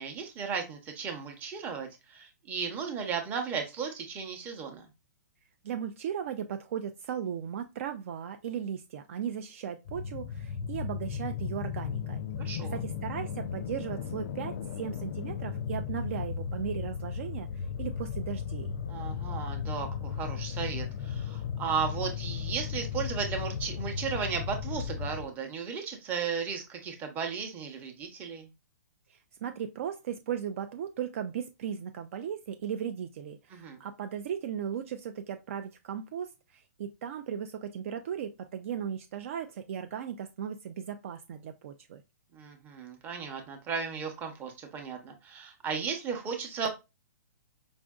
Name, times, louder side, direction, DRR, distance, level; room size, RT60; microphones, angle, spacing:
voice 1, 0.0-4.9 12.4-12.8 18.9-28.5 33.5-33.8 42.3-46.7, right 6 dB, 20° right, 4 dB, 0.8 m, -35 dB
voice 2, 5.6-12.2 12.5-18.7 29.1-42.0, right 8 dB, 50° right, 7 dB, 0.4 m, -37 dB
sound 1, 9.8-25.3, left 6 dB, 45° left, 0.4 m, -35 dB
5.1 x 2.5 x 2.3 m, 0.25 s
hypercardioid pair, 155°, 9 cm